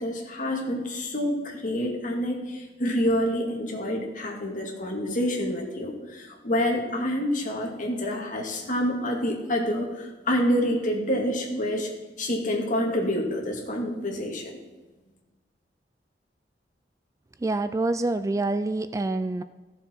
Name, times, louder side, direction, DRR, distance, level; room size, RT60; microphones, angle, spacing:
voice 1, 0.0-11.9 12.2-14.5, equal, 50° left, 1 dB, 2.1 m, -27 dB
voice 2, 17.4-19.4, right 2 dB, 20° right, 11 dB, 0.3 m, -26 dB
15.0 x 7.0 x 4.4 m, 1.2 s
head